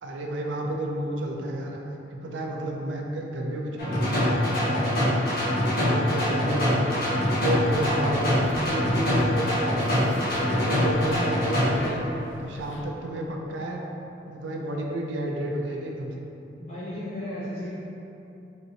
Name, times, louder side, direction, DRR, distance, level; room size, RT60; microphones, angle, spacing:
voice 1, 0.0-1.8 2.1-5.3 5.7-7.0 7.4-10.2 10.6-12.0 12.4-13.8 14.3-16.3, right 1 dB, 85° right, 0 dB, 0.4 m, -31 dB
sound 1, 3.8-11.9, left 1 dB, 50° left, 1.1 m, -24 dB
sound 2, 7.6-12.9, left 1 dB, 90° left, 0.4 m, -40 dB
voice 2, 16.6-17.7, left 1 dB, 35° left, -10 dB, 0.5 m, -36 dB
4.3 x 3.6 x 2.8 m, 2.9 s
head